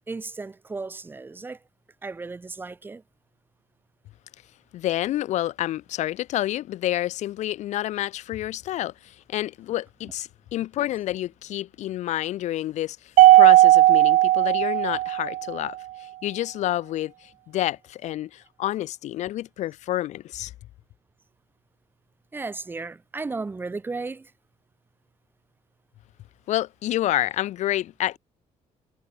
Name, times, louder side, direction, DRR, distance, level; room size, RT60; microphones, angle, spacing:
voice 1, 0.1-1.6 2.0-3.0 22.3-24.3, right 3 dB, 15° right, 1.3 m, -34 dB
voice 2, 4.7-20.5 26.5-28.2, left 14 dB, 65° left, 0.6 m, -29 dB
Mallet percussion, 13.2-15.6, right 15 dB, 70° right, 0.5 m, -16 dB
cardioid pair, 165°, 13 cm